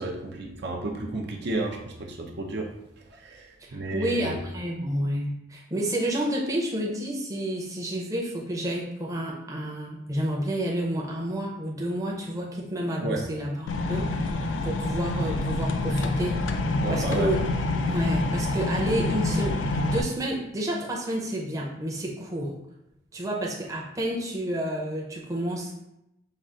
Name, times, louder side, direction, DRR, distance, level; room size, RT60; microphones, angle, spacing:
voice 1, 0.0-2.7 3.1-3.5 3.7-4.4 13.0-13.2 16.8-17.3, right 2 dB, 60° right, 2 dB, 0.6 m, -32 dB
voice 2, 3.6-16.4 16.9-17.5 17.9-22.5 23.1-25.7, right 1 dB, 20° right, -2 dB, 0.7 m, -30 dB
sound 1, 13.7-20.0, left 2 dB, 80° left, 0.4 m, -27 dB
5.4 x 2.4 x 3.7 m, 0.85 s
head